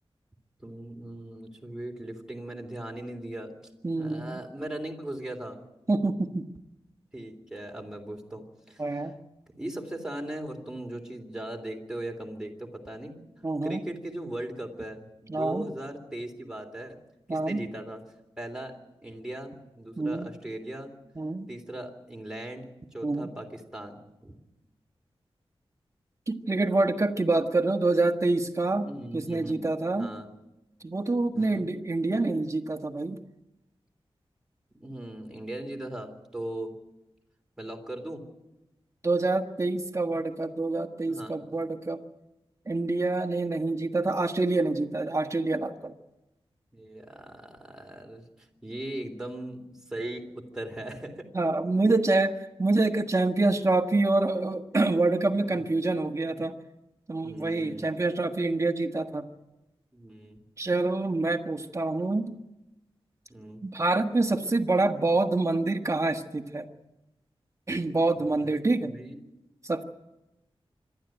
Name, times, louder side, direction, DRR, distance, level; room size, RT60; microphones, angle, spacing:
voice 1, 0.6-3.5 3.9-5.6 7.1-9.1 9.5-13.1 13.6-17.0 17.3-18.0 18.4-18.8 19.0-20.9 21.5-24.4 28.8-29.7 29.9-30.3 31.3-31.7 34.7-36.7 37.6-38.2 41.1-41.5 46.7-51.3 51.9-52.0 56.3-56.5 57.2-57.9 59.9-60.4 63.3-63.6 68.1-68.5 68.8-69.2, right 1 dB, 5° right, 2 dB, 3.3 m, -39 dB
voice 2, 3.8-4.4 5.9-6.5 8.8-9.2 13.4-13.8 15.3-15.7 17.3-17.6 20.0-20.3 21.2-21.5 23.0-23.3 26.3-30.1 30.8-33.2 39.0-42.0 42.7-45.9 51.3-52.3 52.6-56.5 57.1-59.2 60.6-62.3 63.6-66.7 67.7-68.9 69.6-69.8, right 2 dB, 30° right, 5 dB, 1.5 m, -26 dB
26.0 x 12.0 x 9.2 m, 0.97 s
wide cardioid pair, 105°, 10 cm